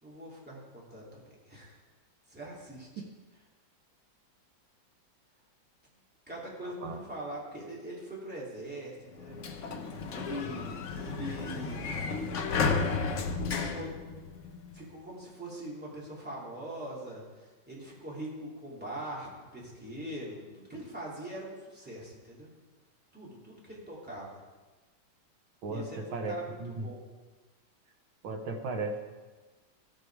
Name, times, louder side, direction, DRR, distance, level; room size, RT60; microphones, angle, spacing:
voice 1, 0.0-1.8 2.3-3.0 6.3-9.4 10.1-12.0 13.7-13.9 14.7-22.5 23.1-24.4 25.7-27.0, right 1 dB, 5° right, -6 dB, 2.8 m, -42 dB
voice 2, 6.6-7.0 25.6-26.3 26.6-26.9 28.2-29.0, right 3 dB, 80° right, 3 dB, 2.0 m, -36 dB
Sliding door, 9.1-14.8, left 4 dB, 55° left, 0.9 m, -33 dB
16.0 x 6.9 x 4.7 m, 1.3 s
omnidirectional pair, 2.2 m